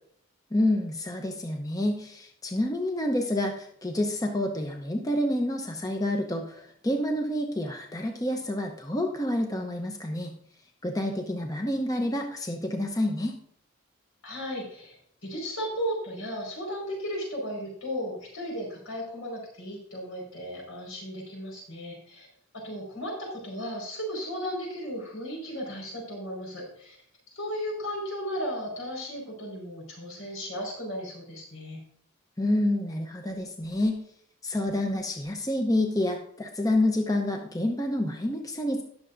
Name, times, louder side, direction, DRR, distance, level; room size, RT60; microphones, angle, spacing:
voice 1, 0.5-10.3 10.8-13.4 32.4-34.0 34.4-38.8, left 1 dB, 15° left, 3 dB, 0.8 m, -28 dB
voice 2, 14.2-15.0 15.2-22.3 22.5-27.0 27.3-31.8, equal, 85° left, -2 dB, 4.9 m, -35 dB
19.0 x 6.6 x 2.6 m, 0.64 s
head